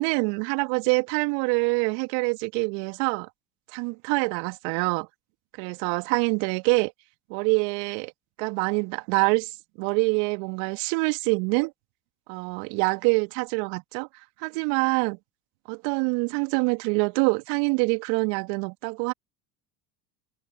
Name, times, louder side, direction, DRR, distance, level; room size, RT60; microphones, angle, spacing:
voice 1, 0.0-3.3 3.7-5.1 5.6-6.9 7.3-8.1 8.4-9.5 9.8-11.7 12.3-14.1 14.4-15.2 15.7-19.1, right 32 dB, 60° right, 2.6 m, -25 dB
hypercardioid pair, 70°, 48 cm